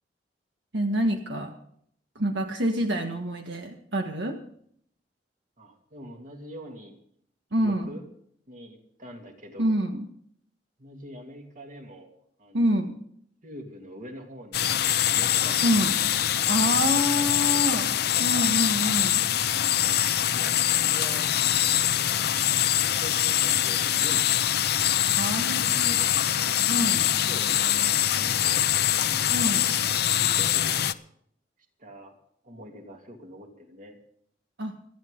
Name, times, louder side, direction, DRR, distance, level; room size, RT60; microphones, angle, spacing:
voice 1, 0.7-1.5 2.1-4.4 7.5-8.0 9.6-10.1 12.5-13.0 15.6-15.9 16.5-19.2 25.1-26.0 26.7-27.1 29.3-29.7 34.6-34.8, equal, 75° right, 4 dB, 1.7 m, -27 dB
voice 2, 5.6-7.0 7.5-8.0 8.5-9.8 10.8-12.1 12.4-12.7 13.4-15.8 16.6-17.3 20.3-22.0 22.7-24.3 25.5-26.1 27.1-28.7 29.5-29.9 30.2-30.9 31.8-32.2 32.4-34.0, equal, 50° right, 2 dB, 3.0 m, -44 dB
sound 1, 14.5-30.9, left 11 dB, 60° left, 0.7 m, -24 dB
27.5 x 10.0 x 3.9 m, 0.65 s
head